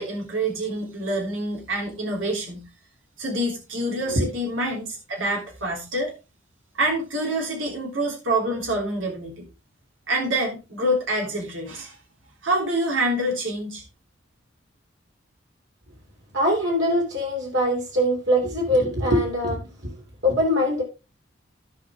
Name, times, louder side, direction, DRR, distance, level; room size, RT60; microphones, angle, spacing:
voice 1, 0.0-2.6 3.2-6.1 6.7-9.4 10.1-12.0 12.4-13.8, right 1 dB, 85° right, 3.2 m, -26 dB
voice 2, 16.3-19.9 20.2-20.8, equal, 65° right, 3.1 m, -22 dB
15.5 x 5.7 x 3.6 m
head